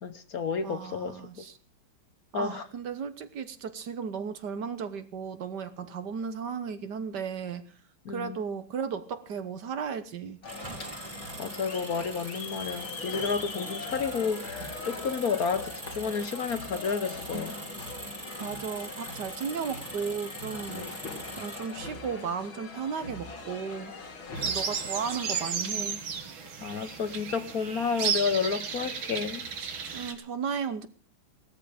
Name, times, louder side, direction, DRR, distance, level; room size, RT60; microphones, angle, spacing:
voice 1, 0.0-1.2 2.3-2.6 8.0-8.4 11.4-17.6 20.7-21.0 24.3-24.5 25.7-25.9 26.6-29.4, left 5 dB, 55° left, 1.3 m, -31 dB
voice 2, 0.6-1.5 2.3-7.6 8.1-10.4 18.4-20.9 21.4-23.9 24.4-26.0 29.9-30.9, right 6 dB, 60° right, 1.6 m, -35 dB
sound 1, 10.4-25.5, left 3 dB, 80° left, 3.2 m, -41 dB
Engine, 10.4-22.1, right 2 dB, 15° right, 2.0 m, -42 dB
sound 2, 24.4-30.1, right 6 dB, 80° right, 2.5 m, -33 dB
17.0 x 13.5 x 5.0 m
omnidirectional pair, 2.2 m